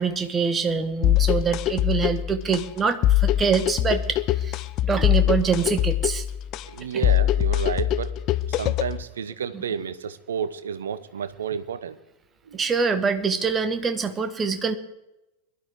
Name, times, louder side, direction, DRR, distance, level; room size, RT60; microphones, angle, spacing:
voice 1, 0.0-6.2 9.5-9.6 12.5-14.7, right 5 dB, 20° right, 9 dB, 1.3 m, -25 dB
sound 1, 1.0-9.0, left 12 dB, 35° left, 0.5 m, -23 dB
voice 2, 6.6-8.2 8.5-12.0 12.5-12.6, right 7 dB, 65° right, 15 dB, 0.9 m, -31 dB
22.0 x 12.0 x 3.7 m, 0.94 s
figure-of-eight pair, 90°, 0 cm